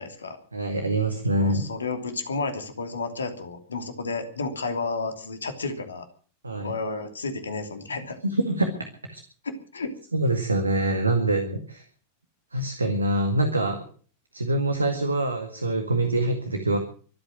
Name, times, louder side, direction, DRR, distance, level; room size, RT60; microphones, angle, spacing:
voice 1, 0.0-0.4 1.4-6.1 6.6-8.2 9.4-9.9, left 3 dB, 70° left, 7 dB, 2.9 m, -32 dB
voice 2, 0.5-1.6 6.4-6.7 8.2-8.7 9.1-9.2 10.1-11.8 12.5-13.8 14.3-16.8, right 1 dB, 80° right, 6 dB, 2.0 m, -25 dB
24.5 x 8.7 x 6.3 m, 0.42 s
figure-of-eight pair, 90°, 0 cm